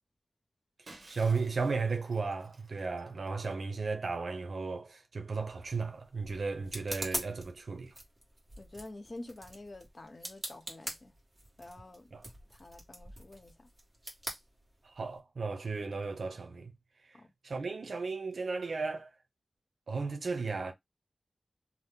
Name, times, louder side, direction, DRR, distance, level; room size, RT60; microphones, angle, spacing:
voice 1, 0.8-7.9 12.1-12.2 14.8-16.7 17.0-19.1 19.9-20.7, right 4 dB, 85° right, 0.5 m, -35 dB
Shatter, 0.9-3.6, right 2 dB, 55° right, 0.9 m, -56 dB
sound 1, 5.3-15.2, right 1 dB, 20° right, 1.3 m, -44 dB
voice 2, 8.6-11.1 11.6-12.1 12.5-13.7 17.1-17.3, left 2 dB, 45° left, 0.7 m, -48 dB
2.9 x 2.0 x 3.4 m
wide cardioid pair, 90°, 0 cm